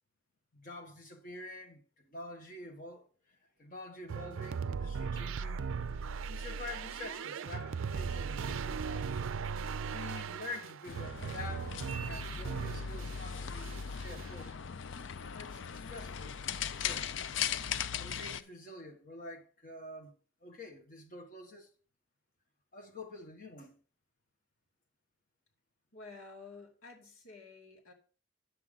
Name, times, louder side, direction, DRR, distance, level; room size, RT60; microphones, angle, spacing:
voice 1, 0.5-5.6 6.3-9.2 9.9-14.5 15.3-16.4 16.7-17.1 18.0-20.1 20.4-21.7 22.7-23.8, left 2 dB, 40° left, 1.7 m, -47 dB
sound 1, 4.1-13.2 13.6-14.4, right 6 dB, 75° right, 0.4 m, -38 dB
sound 2, 10.9-18.4, left 7 dB, 65° left, 0.5 m, -38 dB
voice 2, 25.9-27.9, left 3 dB, 90° left, 2.5 m, -51 dB
9.9 x 7.1 x 3.9 m
head